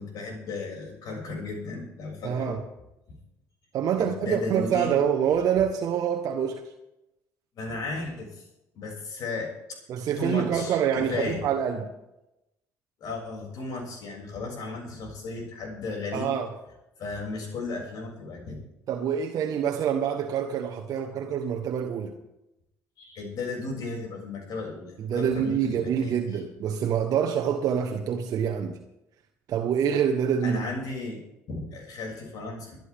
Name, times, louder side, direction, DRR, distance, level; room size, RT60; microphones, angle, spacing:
voice 1, 0.0-2.6 4.0-4.9 7.5-8.5 8.7-9.5 10.2-11.4 13.0-16.3 17.0-18.6 23.0-26.2 30.4-31.2 31.5-32.8, left 3 dB, 60° left, 7.0 m, -35 dB
voice 2, 2.2-2.6 3.7-6.7 9.9-11.9 16.1-16.5 18.9-22.2 25.0-28.8 29.5-30.6, right 8 dB, 55° right, 1.3 m, -26 dB
24.0 x 10.5 x 3.7 m
hypercardioid pair, 55°, 7 cm